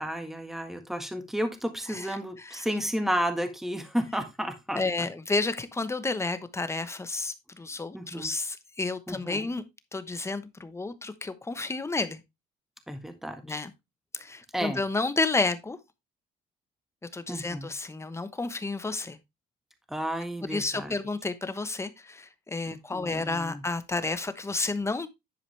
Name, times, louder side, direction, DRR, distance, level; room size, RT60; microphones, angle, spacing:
voice 1, 0.0-5.1 7.9-8.3 9.1-9.5 12.9-13.6 14.5-14.8 17.3-17.7 19.9-20.9 22.7-23.6, equal, ahead, 1.6 m, -32 dB
voice 2, 1.9-2.7 4.7-9.6 9.9-12.2 13.4-13.7 14.1-15.8 17.1-19.2 20.5-25.1, left 3 dB, 15° left, 1.0 m, -31 dB
10.5 x 4.9 x 3.4 m
cardioid pair, 110°, 17 cm